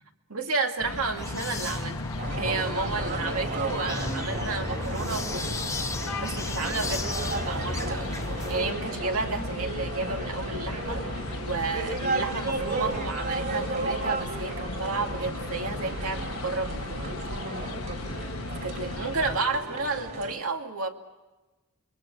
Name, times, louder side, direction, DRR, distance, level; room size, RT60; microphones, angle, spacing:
voice 1, 0.3-2.0 2.4-5.7 6.2-11.0 11.4-17.0 18.6-20.9, right 3 dB, 90° right, 4 dB, 2.4 m, -32 dB
sound 1, 0.8-19.4, left 2 dB, 85° left, 1.2 m, -36 dB
sound 2, 1.1-8.7, left 2 dB, 15° left, 0.9 m, -35 dB
sound 3, 2.2-20.3, right 2 dB, 50° right, 4.6 m, -34 dB
27.0 x 23.0 x 6.2 m, 1.1 s
head